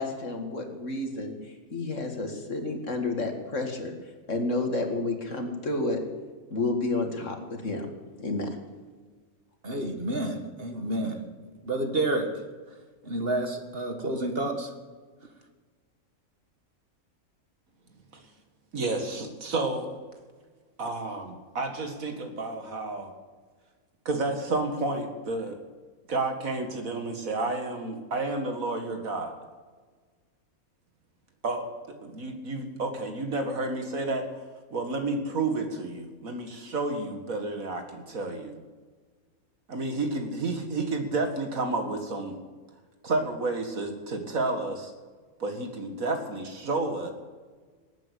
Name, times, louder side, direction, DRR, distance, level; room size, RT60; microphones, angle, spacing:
voice 1, 0.0-1.3 1.7-3.9 4.3-6.0 6.5-7.9 8.2-8.5, left 2 dB, 55° left, 4 dB, 2.3 m, -30 dB
voice 2, 9.6-11.3 11.6-12.4 13.0-14.7, right 1 dB, 40° right, 5 dB, 1.9 m, -29 dB
voice 3, 18.7-19.9 20.8-23.1 24.1-25.6 26.1-29.3 31.4-31.7 32.0-34.3 34.7-38.6 39.7-42.4 43.0-44.9 45.4-47.1, right 2 dB, 70° right, 5 dB, 2.4 m, -30 dB
19.0 x 9.2 x 8.3 m, 1.4 s
omnidirectional pair, 1.5 m